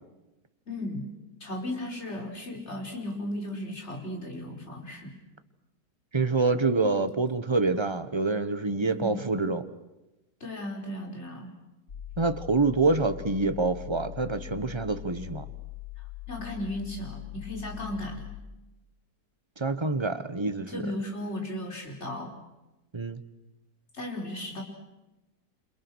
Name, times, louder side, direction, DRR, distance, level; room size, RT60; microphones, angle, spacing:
voice 1, 0.7-1.1 1.4-5.2 8.8-9.3 10.4-11.5 16.0-18.3 20.7-22.3 23.9-24.6, left 1 dB, 40° left, 2 dB, 5.1 m, -36 dB
voice 2, 6.1-9.6 12.2-15.4 19.6-20.8 22.9-23.2, right 3 dB, 20° right, 11 dB, 1.2 m, -26 dB
sound 1, 11.9-18.4, left 18 dB, 75° left, 3.1 m, -42 dB
29.0 x 27.0 x 6.4 m, 1.0 s
omnidirectional pair, 1.7 m